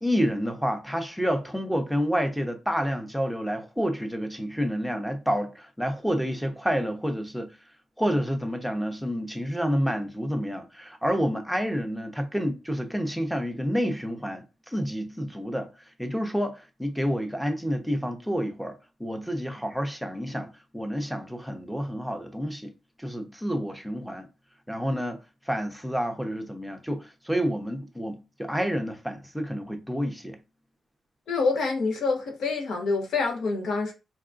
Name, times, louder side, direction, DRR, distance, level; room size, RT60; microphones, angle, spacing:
voice 1, 0.0-7.5 8.0-15.7 16.0-22.7 23.0-24.3 24.7-25.2 25.5-30.4, equal, ahead, 0.7 m, -29 dB
voice 2, 31.3-33.9, left 4 dB, 75° left, 0.9 m, -26 dB
3.7 x 2.2 x 2.5 m
cardioid pair, 65°, 0 cm